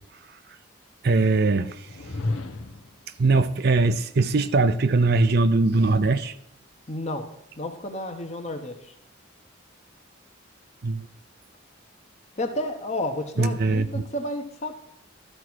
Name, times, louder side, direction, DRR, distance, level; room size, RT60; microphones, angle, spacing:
voice 1, 1.0-1.8 3.2-6.3 10.8-11.1 13.4-14.0, right 3 dB, 50° right, 12 dB, 0.5 m, -21 dB
sound 1, 1.8-3.0, left 2 dB, 85° left, 0.9 m, -31 dB
voice 2, 6.9-8.9 12.4-14.8, left 1 dB, 35° left, 5 dB, 1.0 m, -31 dB
12.5 x 4.8 x 6.1 m, 0.75 s
head